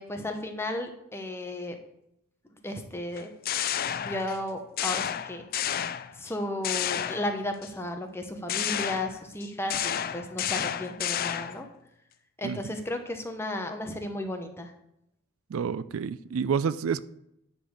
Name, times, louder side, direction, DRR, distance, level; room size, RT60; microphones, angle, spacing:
voice 1, 0.0-1.8 2.6-3.3 4.0-5.8 6.2-11.7 12.4-14.7, left 1 dB, 10° left, 0.9 m, -34 dB
sound 1, 3.2-4.4 4.8-6.3 6.6-7.7 8.5-11.7, left 10 dB, 45° left, 0.4 m, -31 dB
voice 2, 15.5-17.0, right 6 dB, 65° right, 0.4 m, -29 dB
10.0 x 4.0 x 6.4 m
head